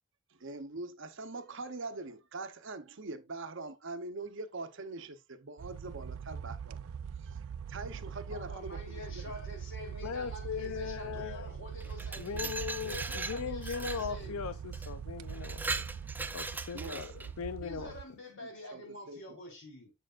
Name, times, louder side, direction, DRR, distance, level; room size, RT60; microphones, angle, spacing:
voice 1, 0.3-6.8 7.2-7.4 7.7-9.4 16.7-17.2 18.7-19.4, right 3 dB, 60° right, 0.8 m, -43 dB
sound 1, 5.6-18.0, right 7 dB, 80° right, 0.4 m, -42 dB
voice 2, 8.3-12.5 12.8-14.4 17.6-19.9, left 1 dB, 60° left, 3.5 m, -47 dB
voice 3, 10.0-11.5 12.2-16.0 16.3-17.9, left 6 dB, 85° left, 0.5 m, -39 dB
Glass, 11.8-14.1 14.7-14.9 15.3-17.3, right 3 dB, 10° right, 0.3 m, -39 dB
7.1 x 6.6 x 2.4 m
head